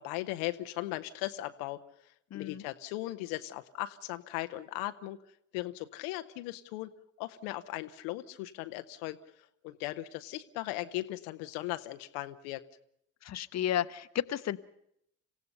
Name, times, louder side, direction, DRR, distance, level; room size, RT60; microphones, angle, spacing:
voice 1, 0.0-1.8 2.3-5.2 5.5-6.9 7.2-9.2 9.6-12.6, left 17 dB, 70° left, 10 dB, 0.9 m, -38 dB
voice 2, 2.3-2.6 13.2-14.6, left 11 dB, 40° left, 12 dB, 0.9 m, -32 dB
27.0 x 16.0 x 6.6 m, 0.73 s
hypercardioid pair, 50°, 39 cm